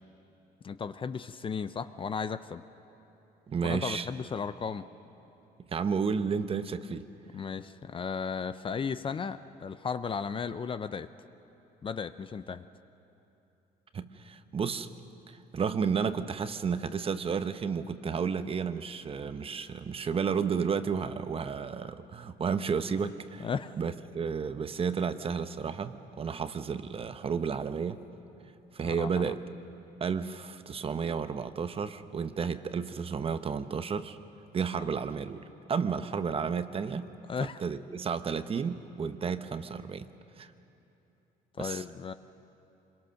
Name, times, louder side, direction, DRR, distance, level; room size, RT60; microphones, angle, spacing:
voice 1, 0.6-2.6 3.6-4.8 7.3-11.1 11.8-12.7 23.4-23.7 28.8-29.3 37.3-37.6 41.6-42.1, left 6 dB, 30° left, 12 dB, 0.6 m, -35 dB
voice 2, 3.5-4.1 5.7-7.1 13.9-14.9 15.3-23.5 23.7-28.0 28.7-29.4 30.0-34.2 34.5-37.1 37.4-40.1 40.4-40.5 41.6-41.8, right 6 dB, 35° right, 11 dB, 0.9 m, -32 dB
25.5 x 22.5 x 6.5 m, 3.0 s
cardioid pair, 110°, 17 cm